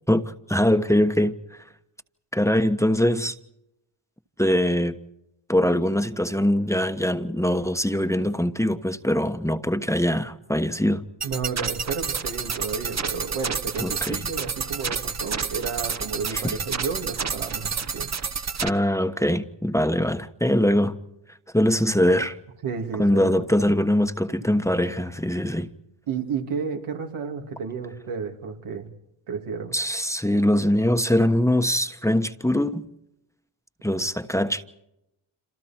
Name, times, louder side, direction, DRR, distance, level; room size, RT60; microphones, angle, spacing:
voice 1, 0.1-1.6 2.3-3.3 4.4-5.0 5.5-11.1 13.8-14.2 16.3-16.6 18.6-21.0 21.5-22.4 23.0-25.7 29.7-32.9 33.8-34.6, left 1 dB, 5° left, 1.2 m, -22 dB
sound 1, 11.2-18.7, right 6 dB, 35° right, 1.1 m, -29 dB
voice 2, 11.2-18.1 22.6-23.4 26.1-28.9 29.3-29.7, right 6 dB, 85° right, 3.0 m, -32 dB
27.5 x 27.0 x 4.5 m
cardioid pair, 75°, 49 cm